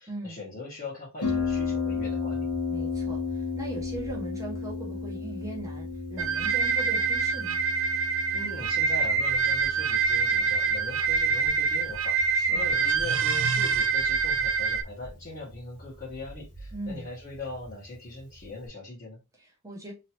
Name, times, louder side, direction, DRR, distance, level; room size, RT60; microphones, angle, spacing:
voice 1, 0.0-2.5 8.3-12.2 12.5-19.2, left 2 dB, 40° left, 1.3 m, -40 dB
Harp, 1.2-18.7, left 4 dB, 75° left, 1.2 m, -35 dB
voice 2, 2.7-7.6 12.3-12.7 16.7-17.1 19.4-19.9, right 2 dB, 15° right, 1.0 m, -40 dB
sound 1, 6.2-14.8, right 5 dB, 65° right, 0.4 m, -25 dB
3.1 x 2.7 x 2.9 m
head